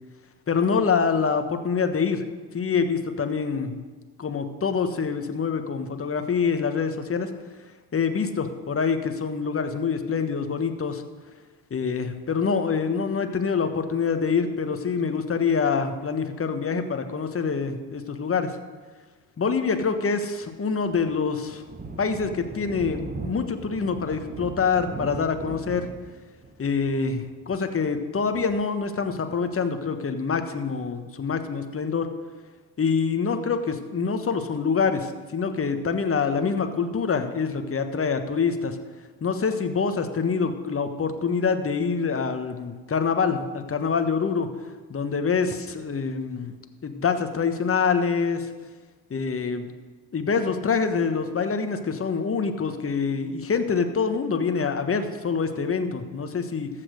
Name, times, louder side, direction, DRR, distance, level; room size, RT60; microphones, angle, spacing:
voice 1, 0.5-2.2 2.5-3.8 4.2-7.3 7.9-11.0 11.7-18.5 19.4-21.6 22.0-25.9 26.6-32.1 32.8-38.8 39.2-44.5 44.9-46.5 46.8-48.5 49.1-49.8 50.1-56.7, left 5 dB, 25° left, 7 dB, 1.3 m, -25 dB
Thunder, 20.4-29.6, right 3 dB, 20° right, 1.1 m, -39 dB
14.0 x 6.0 x 6.5 m, 1.4 s
hypercardioid pair, 55°, 49 cm